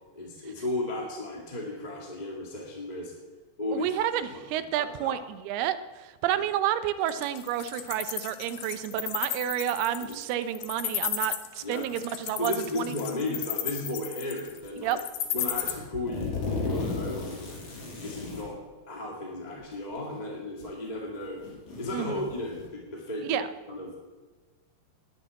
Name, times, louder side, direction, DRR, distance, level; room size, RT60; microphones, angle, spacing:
voice 1, 0.1-3.1 3.6-3.9 4.5-5.2 10.0-10.1 11.6-11.9 12.4-15.0 15.3-17.6 18.0-18.6 18.9-21.4 21.8-24.0, left 2 dB, 20° left, -2 dB, 1.3 m, -35 dB
voice 2, 3.7-12.9 14.8-15.0 21.9-22.3 23.2-23.5, right 11 dB, 90° right, 12 dB, 2.7 m, -30 dB
Wild animals, 7.1-15.7, left 11 dB, 85° left, 3.1 m, -33 dB
sound 1, 14.6-15.0 15.5-18.5 19.6-19.7 20.6-20.7 21.2-22.7, left 3 dB, 55° left, 5.4 m, -35 dB
10.5 x 10.5 x 9.8 m, 1.3 s
omnidirectional pair, 4.5 m